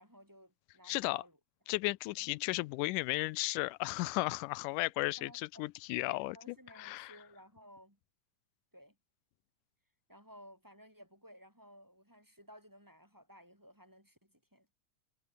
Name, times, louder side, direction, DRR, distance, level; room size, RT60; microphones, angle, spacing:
voice 1, 0.0-1.4 2.0-2.3 5.2-5.7 6.0-8.0 8.7-9.0 10.1-14.7, equal, 5° right, 6.0 m, -57 dB
voice 2, 0.8-1.2 1.7-7.1, left 21 dB, 90° left, 2.1 m, -35 dB
omnidirectional pair, 3.6 m